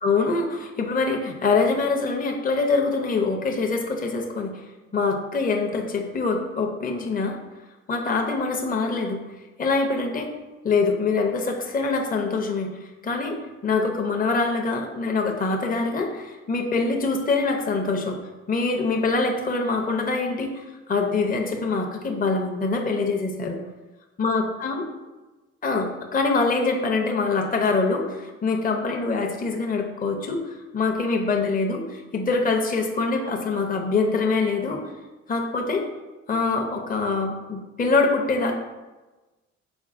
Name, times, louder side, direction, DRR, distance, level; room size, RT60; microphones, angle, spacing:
voice 1, 0.0-4.6 4.9-7.3 7.9-9.2 9.6-10.3 10.6-13.4 13.6-18.2 18.5-23.6 24.2-24.8 25.6-34.8 35.3-35.8 36.3-38.5, left 3 dB, 30° left, 2 dB, 0.6 m, -24 dB
5.2 x 4.1 x 2.5 m, 1.2 s
cardioid pair, 90°, 30 cm